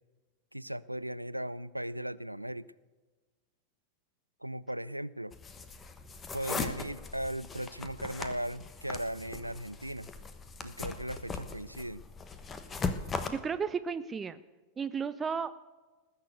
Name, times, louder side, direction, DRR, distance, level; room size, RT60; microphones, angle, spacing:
voice 1, 0.5-2.7 4.4-5.4 6.3-10.1 10.6-12.0, right 1 dB, 90° right, 19 dB, 0.4 m, -37 dB
sound 1, 5.3-13.3, left 4 dB, 20° left, 1.2 m, -39 dB
voice 2, 13.3-14.4 14.8-15.6, right 6 dB, 20° right, 12 dB, 0.5 m, -34 dB
19.5 x 6.8 x 8.2 m, 1.3 s
figure-of-eight pair, 90°, 0 cm